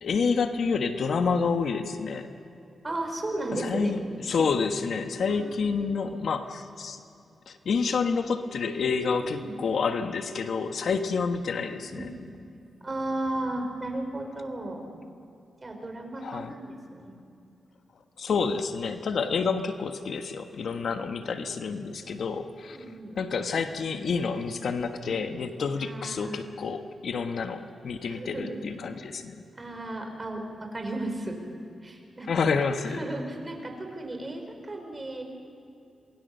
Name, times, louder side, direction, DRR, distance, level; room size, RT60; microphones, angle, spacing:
voice 1, 0.0-2.3 3.6-4.0 4.3-7.0 7.5-12.1 16.2-16.5 18.2-22.8 23.2-29.3 32.3-33.1, left 5 dB, 70° left, 7 dB, 1.4 m, -28 dB
voice 2, 2.8-3.9 5.3-5.5 9.2-9.5 11.8-12.2 12.8-14.8 15.6-17.1 20.7-20.9 22.7-23.2 25.1-25.3 25.8-26.5 28.1-28.6 29.5-31.4 31.8-32.5 32.8-35.2, right 2 dB, 25° right, 3 dB, 5.0 m, -35 dB
27.5 x 21.5 x 6.8 m, 2.6 s
wide cardioid pair, 100°, 0 cm